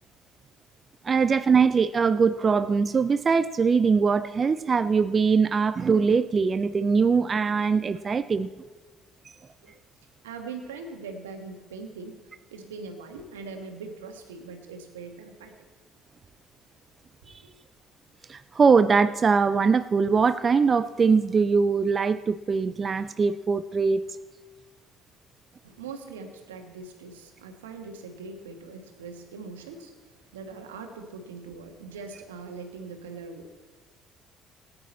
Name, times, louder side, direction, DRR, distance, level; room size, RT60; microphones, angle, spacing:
voice 1, 1.0-8.5 17.3-17.4 18.3-24.0, right 5 dB, 35° right, 14 dB, 0.4 m, -22 dB
voice 2, 10.2-12.2 12.5-15.5 17.2-17.5 25.6-33.5, right 4 dB, 80° right, 5 dB, 1.4 m, -41 dB
17.5 x 9.5 x 4.3 m, 1.4 s
figure-of-eight pair, 55°, 0 cm